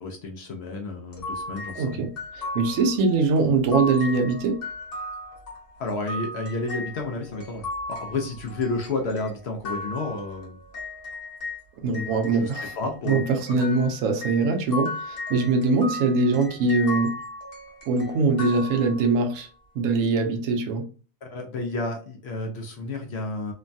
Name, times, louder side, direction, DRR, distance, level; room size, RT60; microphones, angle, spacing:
voice 1, 0.0-2.0 5.8-10.6 12.4-13.2 13.5-13.6 21.2-23.5, left 3 dB, 65° left, 0.7 m, -31 dB
sound 1, 1.1-11.6 11.9-19.3, left 2 dB, 45° left, 1.1 m, -36 dB
voice 2, 1.8-4.6 11.8-12.7 13.1-17.1 17.9-19.5 19.7-20.9, right 3 dB, 65° right, 0.9 m, -22 dB
3.1 x 2.2 x 2.5 m
omnidirectional pair, 1.6 m